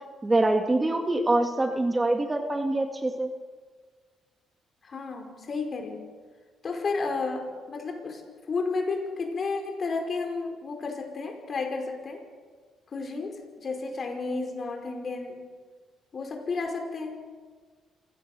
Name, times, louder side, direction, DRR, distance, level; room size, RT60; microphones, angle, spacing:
voice 1, 0.2-3.3, right 2 dB, 20° right, 5 dB, 1.9 m, -24 dB
voice 2, 4.8-6.1 6.6-8.2 8.5-12.2 12.9-15.4 16.1-17.2, left 4 dB, 45° left, 3 dB, 5.1 m, -32 dB
27.5 x 16.5 x 6.9 m, 1.5 s
cardioid pair, 90°, 0 cm